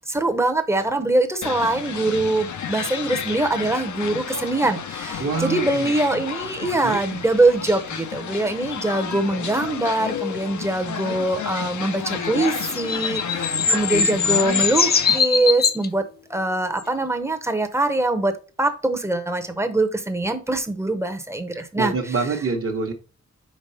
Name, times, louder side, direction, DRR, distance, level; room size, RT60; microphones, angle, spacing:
voice 1, 0.1-16.0 16.3-18.3 18.6-21.9, right 2 dB, 10° right, 0.7 m, -23 dB
sound 1, 1.4-15.2, left 8 dB, 80° left, 0.7 m, -31 dB
voice 2, 5.2-6.0 6.7-7.0 21.5-22.9, right 4 dB, 50° right, 1.0 m, -26 dB
sound 2, 12.5-15.9 16.8-16.9, left 5 dB, 35° left, 0.4 m, -21 dB
5.3 x 4.0 x 5.5 m
wide cardioid pair, 175°, 29 cm